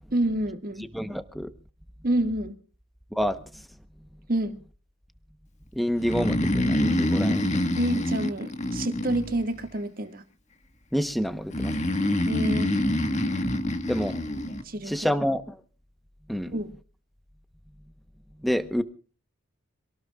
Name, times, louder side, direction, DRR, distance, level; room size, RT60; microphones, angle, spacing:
voice 1, 0.1-0.8 2.0-2.6 4.3-4.6 7.8-10.2 12.3-12.7 14.6-15.2 16.5-16.7, right 1 dB, 40° right, 7 dB, 1.9 m, -28 dB
voice 2, 0.9-1.5 3.1-3.7 5.7-7.6 10.9-11.7 13.9-14.2 14.8-15.6 16.3-16.5 18.4-18.8, equal, ahead, 10 dB, 0.9 m, -28 dB
Breathing, 6.0-9.7 11.5-14.6, left 1 dB, 30° left, 1.7 m, -26 dB
27.0 x 18.5 x 2.4 m, 0.37 s
head